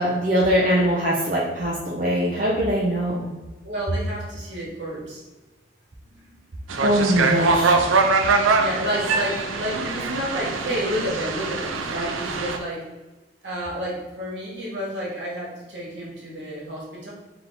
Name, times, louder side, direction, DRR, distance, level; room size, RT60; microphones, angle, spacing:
voice 1, 0.0-3.3 6.8-7.7, equal, 40° right, -5 dB, 0.5 m, -22 dB
voice 2, 3.6-5.2 6.0-6.3 8.6-12.8 13.4-17.1, equal, 65° right, -5 dB, 1.4 m, -30 dB
sound 1, 6.7-12.6, right 4 dB, 90° right, 0.4 m, -23 dB
3.4 x 2.8 x 4.0 m, 1.2 s
head